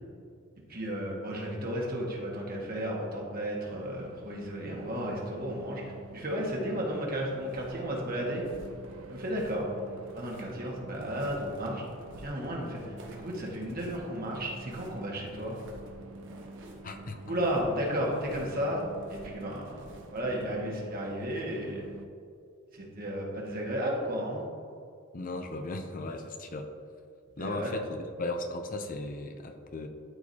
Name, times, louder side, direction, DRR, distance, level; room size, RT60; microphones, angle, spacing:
voice 1, 0.7-5.8 6.1-8.4 9.1-9.7 10.1-11.8 12.2-12.9 13.2-15.6 17.3-18.8 19.1-21.8 22.7-24.4 27.4-27.7, equal, 45° right, -2 dB, 1.6 m, -33 dB
sound 1, 3.7-22.1, right 2 dB, 85° right, 0.5 m, -49 dB
sound 2, 7.4-20.5, right 1 dB, 60° right, 1.2 m, -51 dB
voice 2, 16.8-17.2 25.1-26.7 27.4-29.9, left 2 dB, 40° left, 6 dB, 0.6 m, -36 dB
12.5 x 4.7 x 2.8 m, 2.4 s
head